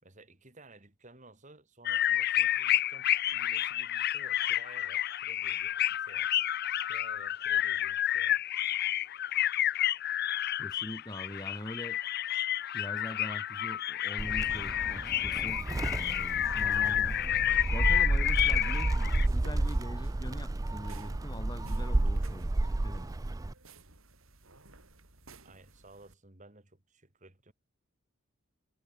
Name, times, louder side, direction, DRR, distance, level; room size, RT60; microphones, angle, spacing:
voice 1, 0.0-6.3 6.8-8.4 22.1-22.4 25.4-27.5, right 2 dB, 35° right, 2.7 m, -55 dB
sound 1, 1.9-19.3, left 12 dB, 50° left, 0.5 m, -30 dB
voice 2, 10.6-12.0 12.7-17.2 17.7-23.1, left 1 dB, 20° left, 1.8 m, -43 dB
Gull seagull, 14.2-23.5, right 2 dB, 15° right, 0.4 m, -31 dB
sound 2, 19.2-26.1, right 3 dB, 80° right, 4.9 m, -56 dB
head